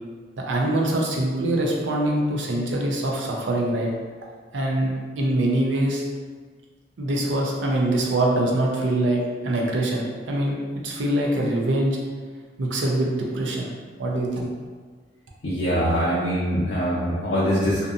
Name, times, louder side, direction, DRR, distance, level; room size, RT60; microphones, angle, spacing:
voice 1, 0.4-3.9 4.5-6.1 7.0-10.6 10.8-12.0 12.6-13.7 14.0-14.5, right 1 dB, 85° right, -1 dB, 0.5 m, -24 dB
voice 2, 15.4-17.9, equal, 70° left, -9 dB, 0.5 m, -23 dB
2.6 x 2.5 x 2.4 m, 1.5 s
head